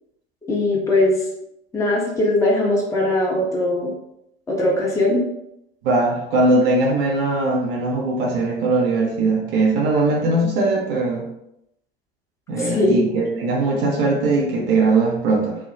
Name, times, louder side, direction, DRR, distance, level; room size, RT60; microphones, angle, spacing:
voice 1, 0.5-1.2 1.7-3.9 4.5-5.2 12.6-13.0, left 1 dB, 10° left, -4 dB, 0.8 m, -20 dB
voice 2, 5.8-11.2 12.5-15.6, right 2 dB, 65° right, -1 dB, 0.7 m, -20 dB
2.7 x 2.3 x 2.6 m, 0.79 s
figure-of-eight pair, 60°, 30 cm